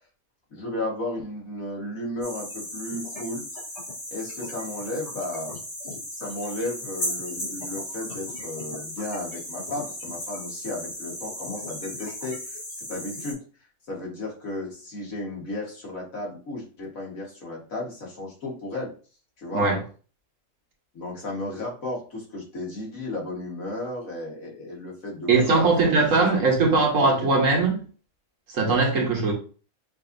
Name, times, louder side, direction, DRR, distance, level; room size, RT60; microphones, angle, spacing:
voice 1, 0.5-3.5 4.1-5.5 6.2-12.4 12.9-13.4 13.9-18.9 19.4-19.6 20.9-26.4 26.7-27.3, left 2 dB, 80° left, 1.9 m, -34 dB
sound 1, 2.2-13.3, left 1 dB, 55° left, 1.7 m, -36 dB
voice 2, 25.3-27.8 28.5-29.3, right 3 dB, 70° right, 1.6 m, -20 dB
5.7 x 2.7 x 2.6 m
omnidirectional pair, 1.4 m